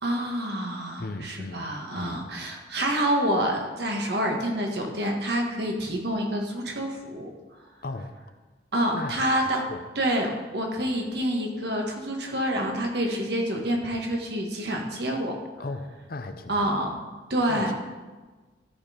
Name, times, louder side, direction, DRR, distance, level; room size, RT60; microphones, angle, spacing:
voice 1, 0.0-7.3 8.7-9.6 10.0-15.3 16.5-17.0 17.3-17.7, right 1 dB, 65° right, 1 dB, 1.6 m, -27 dB
voice 2, 1.0-2.3 7.8-8.1 8.9-9.2 9.7-9.8 15.6-16.9 17.5-17.7, left 2 dB, 55° left, 8 dB, 0.7 m, -37 dB
13.5 x 4.6 x 5.1 m, 1.3 s
head